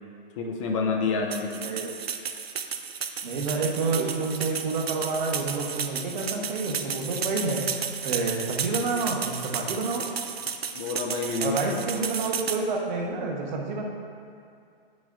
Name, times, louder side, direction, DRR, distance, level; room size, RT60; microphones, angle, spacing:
voice 1, 0.4-1.5 10.7-11.6, left 4 dB, 30° left, 1 dB, 0.6 m, -28 dB
sound 1, 1.3-12.6, right 7 dB, 90° right, 0.5 m, -33 dB
voice 2, 1.6-1.9 3.2-7.7 8.0-10.0 11.4-13.8, right 3 dB, 50° right, 0 dB, 1.1 m, -29 dB
8.0 x 6.2 x 2.4 m, 2.3 s
figure-of-eight pair, 125°, 30 cm